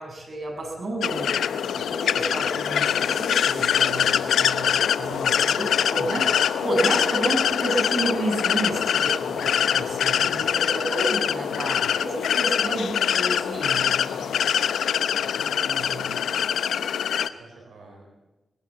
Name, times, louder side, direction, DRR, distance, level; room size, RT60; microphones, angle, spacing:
voice 1, 0.0-4.7 5.0-16.2, right 1 dB, 55° right, 3 dB, 7.0 m, -31 dB
sound 1, 1.0-17.3, left 8 dB, 90° left, 0.7 m, -24 dB
voice 2, 10.1-10.8 17.2-18.0, right 3 dB, 90° right, 1 dB, 4.5 m, -50 dB
20.0 x 16.5 x 8.3 m, 1.1 s
cardioid pair, 50°, 0 cm